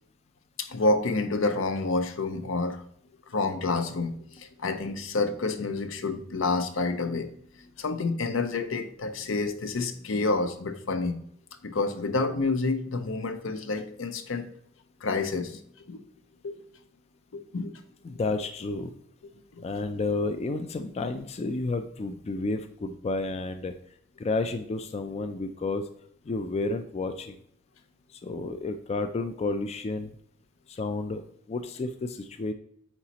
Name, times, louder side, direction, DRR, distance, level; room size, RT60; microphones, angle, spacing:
voice 1, 0.6-2.8 3.3-7.3 7.6-11.2 11.6-14.5 15.0-16.0 16.4-16.6 17.3-17.7 19.5-19.6, left 3 dB, 75° left, 9 dB, 0.6 m, -29 dB
voice 2, 18.0-18.9 19.6-23.7 24.2-25.8 26.3-27.4 28.1-30.1 30.7-31.2 31.5-32.5, left 3 dB, 30° left, 8 dB, 0.3 m, -31 dB
8.8 x 4.0 x 2.9 m, 0.69 s
head